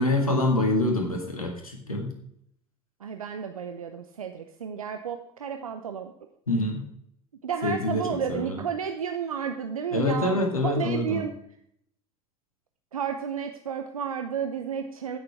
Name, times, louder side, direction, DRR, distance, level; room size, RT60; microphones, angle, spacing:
voice 1, 0.0-2.1 6.5-6.8 7.6-8.6 9.9-11.2, left 1 dB, 90° left, 3 dB, 1.7 m, -26 dB
voice 2, 3.0-6.1 7.4-11.3 12.9-15.2, right 7 dB, 85° right, 7 dB, 0.6 m, -32 dB
16.0 x 6.7 x 3.4 m, 0.72 s
figure-of-eight pair, 65°, 18 cm